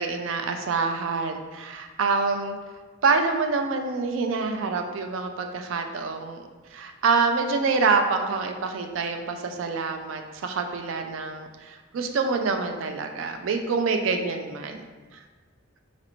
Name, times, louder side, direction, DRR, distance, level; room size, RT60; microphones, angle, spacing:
voice 1, 0.0-2.6 3.0-14.8, right 4 dB, 70° right, 5 dB, 0.4 m, -26 dB
4.1 x 2.5 x 2.9 m, 1.3 s
head